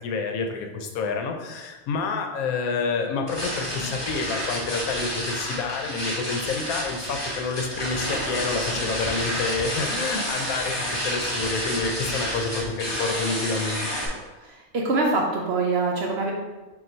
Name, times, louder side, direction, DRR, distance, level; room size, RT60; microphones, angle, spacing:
voice 1, 0.0-13.9, left 4 dB, 85° left, 4 dB, 1.1 m, -28 dB
sound 1, 3.3-14.1, equal, 20° left, 0.8 m, -30 dB
voice 2, 14.4-16.3, right 3 dB, 60° right, 0 dB, 0.7 m, -24 dB
3.9 x 2.6 x 4.3 m, 1.2 s
omnidirectional pair, 1.5 m